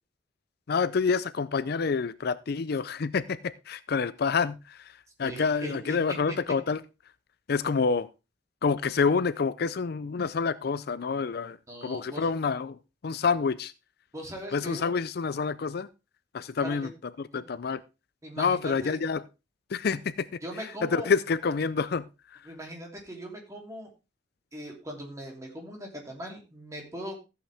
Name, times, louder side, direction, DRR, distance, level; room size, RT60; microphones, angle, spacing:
voice 1, 0.7-4.9 5.2-6.8 7.5-8.1 8.6-12.7 13.0-13.7 14.5-15.9 16.3-16.9 17.2-17.8 18.4-19.2 19.7-20.3 20.8-22.0, left 5 dB, 55° left, 15 dB, 0.5 m, -27 dB
voice 2, 5.2-6.0 11.7-12.3 14.1-15.0 16.6-16.8 17.3-17.4 18.2-19.0 20.4-21.1 22.4-23.9 24.5-27.2, right 1 dB, 15° right, 1 dB, 3.0 m, -40 dB
14.0 x 8.0 x 3.4 m, 0.28 s
head